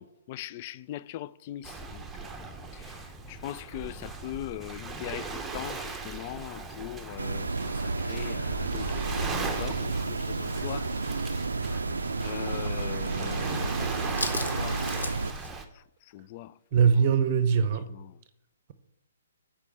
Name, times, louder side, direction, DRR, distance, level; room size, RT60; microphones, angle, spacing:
voice 1, 0.0-2.4 2.7-10.9 11.2-11.5 12.2-13.8 14.3-15.2 15.7-15.8 16.1-17.0 17.9-18.2, left 13 dB, 40° left, 0.3 m, -41 dB
Waves surf, 1.6-15.6, right 4 dB, 10° right, 0.8 m, -38 dB
sound 1, 7.2-15.3, right 3 dB, 80° right, 0.4 m, -31 dB
sound 2, 10.6-12.8 13.0-13.5 13.7-15.5, left 2 dB, 90° left, 1.2 m, -38 dB
voice 2, 16.7-17.9, right 6 dB, 40° right, 0.7 m, -22 dB
8.1 x 4.9 x 7.3 m
figure-of-eight pair, 130°, 0 cm